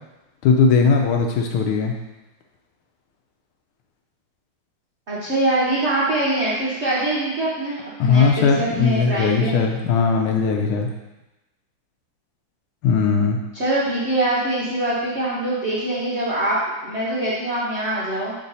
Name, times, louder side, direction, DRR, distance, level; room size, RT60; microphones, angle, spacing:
voice 1, 0.4-1.9 8.0-10.9 12.8-13.4, left 5 dB, 80° left, 2 dB, 1.5 m, -18 dB
voice 2, 5.1-9.5 13.5-16.6 16.8-18.3, right 1 dB, 40° right, -9 dB, 1.1 m, -23 dB
7.3 x 3.8 x 4.0 m, 1.0 s
omnidirectional pair, 2.3 m